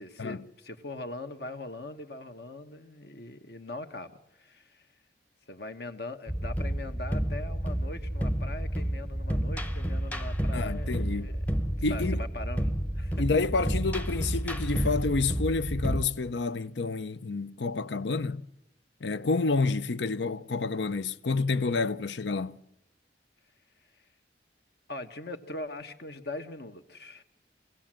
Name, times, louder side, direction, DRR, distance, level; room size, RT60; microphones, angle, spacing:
voice 1, 0.0-4.9 5.5-11.5 11.9-13.2 24.9-27.2, left 2 dB, 60° left, 1.3 m, -41 dB
sound 1, 6.3-16.1, equal, 10° left, 0.8 m, -30 dB
voice 2, 10.5-11.3 11.8-12.2 13.2-18.4 19.0-22.6, left 3 dB, 80° left, 0.7 m, -29 dB
24.0 x 16.5 x 7.6 m
head